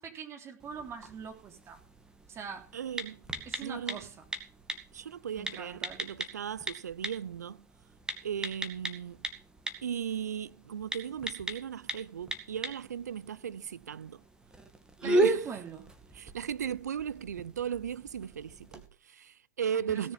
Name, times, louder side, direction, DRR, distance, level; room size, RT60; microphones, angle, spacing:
voice 1, 0.0-1.8 2.3-2.7 3.5-4.3 5.3-6.1 15.0-15.9 19.7-20.1, right 6 dB, 30° right, 3.5 m, -43 dB
sound 1, 0.6-18.9, right 1 dB, 10° right, 2.3 m, -37 dB
voice 2, 2.7-3.2 3.6-4.0 4.9-7.6 8.2-9.2 9.8-14.2 15.0-15.4 16.2-20.1, right 8 dB, 80° right, 0.5 m, -37 dB
17.5 x 7.1 x 5.7 m
hypercardioid pair, 95°, 9 cm